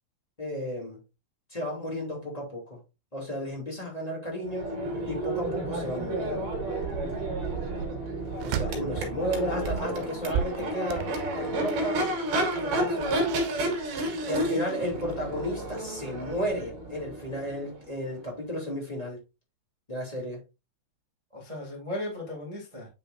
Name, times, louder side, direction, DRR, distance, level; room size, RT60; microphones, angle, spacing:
voice 1, 0.4-1.0 1.5-2.8 3.1-4.8 5.0-6.5 8.4-12.0 12.5-13.4 14.2-19.2 19.9-20.4, equal, 10° left, 2.0 m, -33 dB
Crowd / Race car auto racing / Accelerating revving vroom, 4.4-18.3, right 1 dB, 55° right, 3.4 m, -31 dB
sound 1, 8.3-9.2 9.5-11.7 12.9-13.9 14.1-14.3, right 8 dB, 85° right, 2.8 m, -34 dB
voice 2, 8.7-9.5 14.3-14.6 21.3-22.9, left 1 dB, 20° right, 0.9 m, -37 dB
8.8 x 5.6 x 2.6 m
omnidirectional pair, 5.0 m